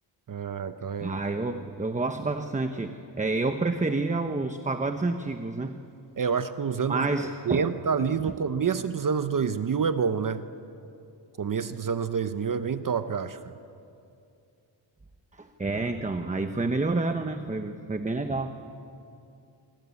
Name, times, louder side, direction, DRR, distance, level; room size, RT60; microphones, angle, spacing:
voice 1, 0.3-1.2 6.2-7.1 7.5-10.5 11.4-13.5, right 6 dB, 45° right, 10 dB, 0.9 m, -28 dB
voice 2, 1.0-5.8 6.9-7.7 8.2-8.3 15.3-18.5, right 3 dB, 15° right, 6 dB, 1.0 m, -29 dB
27.0 x 24.5 x 8.4 m, 2.6 s
wide cardioid pair, 140°, 46 cm